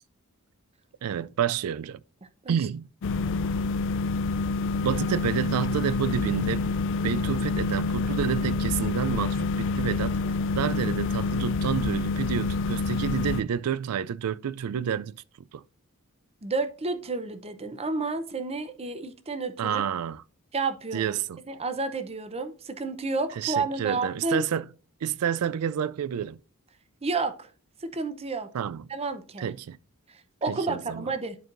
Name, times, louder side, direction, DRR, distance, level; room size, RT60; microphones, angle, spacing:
voice 1, 1.0-2.0 2.5-2.9 4.8-6.7 7.0-10.2 10.6-15.6 19.6-20.2 20.9-21.4 23.4-24.7 25.0-26.4 28.5-28.9 29.4-29.8 30.5-31.1, right 8 dB, 85° right, 0.4 m, -29 dB
sound 1, 3.0-13.4, left 3 dB, 60° left, 0.4 m, -27 dB
voice 2, 16.4-19.8 20.5-21.2 21.5-24.4 27.0-27.5 27.8-28.5 28.9-29.5 30.1-31.4, right 3 dB, 30° right, 0.6 m, -31 dB
11.0 x 4.5 x 2.5 m
head